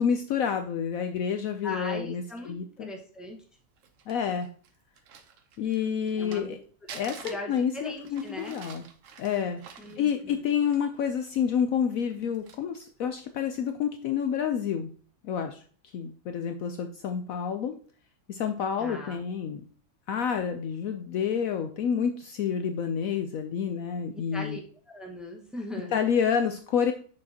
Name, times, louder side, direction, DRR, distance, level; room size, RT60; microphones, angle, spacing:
voice 1, 0.0-2.9 4.1-4.5 5.6-6.6 6.9-8.9 9.2-9.6 10.0-14.9 15.2-15.6 15.9-17.7 18.3-19.6 20.1-24.6 25.9-26.9, left 7 dB, 70° left, 7 dB, 0.9 m, -29 dB
voice 2, 1.6-3.4 6.2-6.6 6.9-7.0 7.2-8.6 9.8-10.4 18.8-19.2 24.1-24.6 24.9-26.0, left 1 dB, ahead, 0 dB, 1.1 m, -39 dB
Crumpling crinkling, 3.6-6.5 6.9-11.0 11.3-11.4 12.0-12.9 13.5-13.7, right 6 dB, 60° right, 1.0 m, -48 dB
6.5 x 6.4 x 2.8 m, 0.42 s
omnidirectional pair, 1.7 m